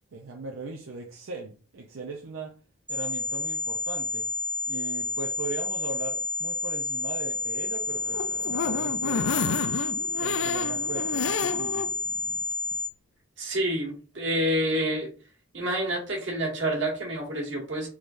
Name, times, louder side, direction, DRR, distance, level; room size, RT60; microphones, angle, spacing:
voice 1, 0.1-2.5 2.9-4.3 4.7-9.6 10.2-11.9, right 3 dB, 85° right, 2 dB, 0.5 m, -39 dB
sound 1, 2.9-12.9, left 2 dB, 10° right, 0.4 m, -30 dB
sound 2, 7.9-11.9 12.3-12.4 12.7-12.8, left 6 dB, 75° left, 0.3 m, -30 dB
voice 2, 13.4-15.1 15.5-17.9, equal, 65° right, -2 dB, 1.5 m, -28 dB
3.6 x 3.2 x 2.5 m, 0.38 s
head